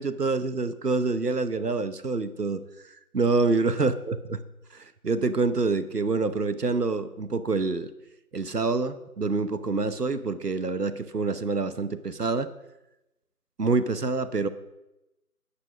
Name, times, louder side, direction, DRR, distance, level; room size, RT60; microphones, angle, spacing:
voice 1, 0.0-2.6 3.1-4.1 4.7-7.9 8.3-12.5 13.6-14.5, right 3 dB, 85° right, 12 dB, 1.0 m, -26 dB
9.8 x 9.8 x 6.3 m, 0.95 s
figure-of-eight pair, 175°, 46 cm